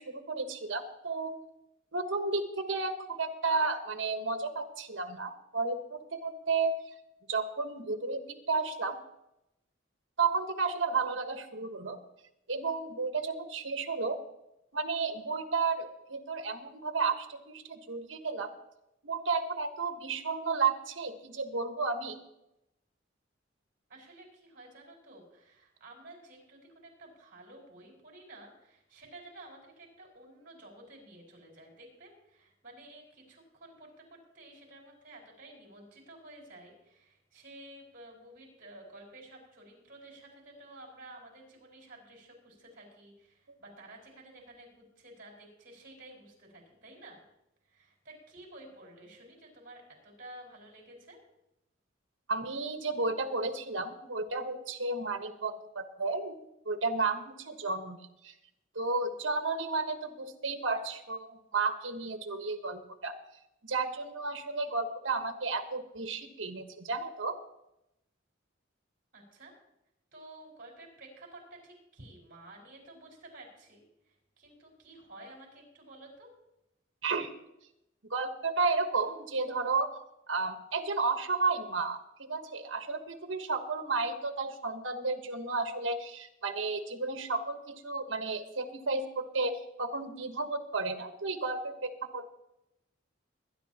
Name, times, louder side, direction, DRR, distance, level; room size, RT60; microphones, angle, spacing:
voice 1, 0.0-1.3 1.9-6.7 7.3-9.0 10.2-12.0 12.5-14.2 14.7-18.5 19.0-22.2 52.3-56.4 56.6-58.0 58.2-58.3 58.7-63.1 63.6-67.4 77.0-77.3 78.1-80.0 80.3-92.3, right 4 dB, 75° right, 6 dB, 1.3 m, -32 dB
voice 2, 23.9-47.2 47.7-51.2 69.1-69.5 70.1-76.3, right 1 dB, 45° right, 0 dB, 5.1 m, -52 dB
22.5 x 10.5 x 2.9 m, 0.87 s
head